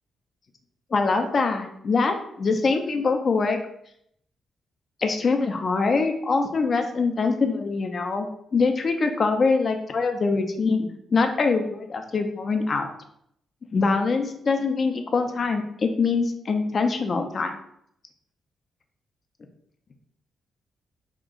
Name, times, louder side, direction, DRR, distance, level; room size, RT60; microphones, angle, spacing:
voice 1, 0.9-3.6 5.0-8.3 8.5-12.9 13.7-17.6, left 4 dB, 45° left, 6 dB, 0.5 m, -24 dB
2.8 x 2.4 x 3.6 m, 0.71 s
cardioid pair, 95°, 0 cm